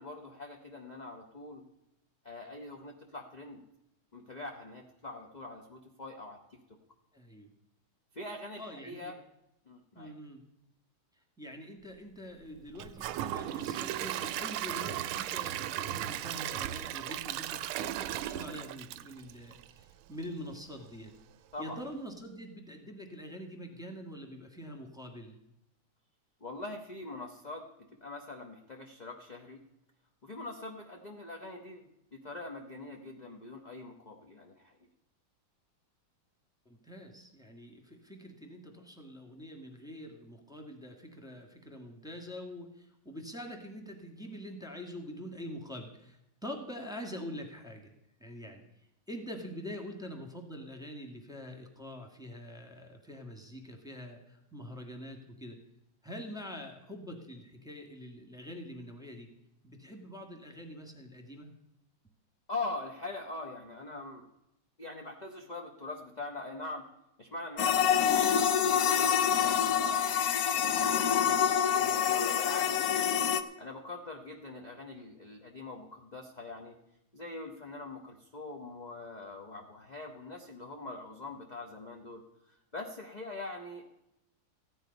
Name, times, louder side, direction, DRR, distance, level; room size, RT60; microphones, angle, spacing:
voice 1, 0.0-1.6 2.2-3.6 4.1-6.4 8.1-9.1 9.7-10.1 21.5-21.8 26.4-27.6 28.0-29.6 30.2-34.8 62.5-64.3 64.8-66.8 67.2-70.2 70.5-73.1 73.6-76.8 77.1-82.2 82.5-83.9, left 2 dB, 35° left, 1 dB, 0.7 m, -43 dB
voice 2, 7.1-7.5 8.6-9.2 9.9-10.4 11.4-21.1 21.6-25.4 36.6-47.9 48.2-48.6 49.1-55.6 56.0-59.3 59.6-61.5, equal, ahead, 3 dB, 1.5 m, -45 dB
Gurgling / Toilet flush / Trickle dribble, 12.8-19.8 20.2-20.3 20.8-20.9, right 13 dB, 80° right, 1.4 m, -36 dB
sound 1, 67.6-73.4, left 8 dB, 65° left, 0.9 m, -26 dB
15.0 x 10.0 x 5.3 m, 0.86 s
omnidirectional pair, 2.4 m